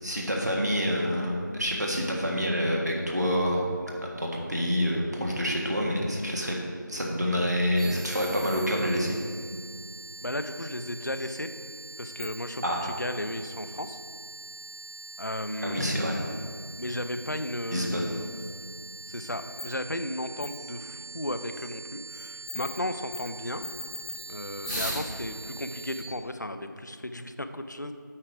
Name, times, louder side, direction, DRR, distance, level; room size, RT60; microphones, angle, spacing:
voice 1, 0.0-3.9 4.2-6.6 6.9-9.2 12.6-12.8 15.6-16.2 17.7-18.1, equal, 55° right, -1 dB, 1.6 m, -27 dB
sound 1, 7.8-26.0, right 3 dB, 10° right, 1.6 m, -41 dB
voice 2, 10.2-11.5 12.0-14.0 15.2-16.4 16.8-18.3 19.1-23.6 24.3-27.9, left 1 dB, 60° left, 9 dB, 0.5 m, -34 dB
8.6 x 4.8 x 4.9 m, 2.1 s
figure-of-eight pair, 175°, 11 cm